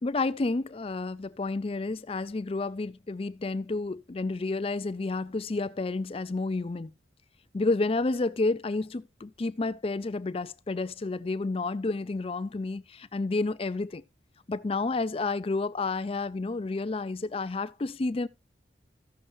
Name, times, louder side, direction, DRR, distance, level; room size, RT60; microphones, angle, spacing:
voice 1, 0.0-6.9 7.5-14.0 14.5-18.3, left 3 dB, 30° left, 0.4 m, -30 dB
14.5 x 6.5 x 3.0 m
head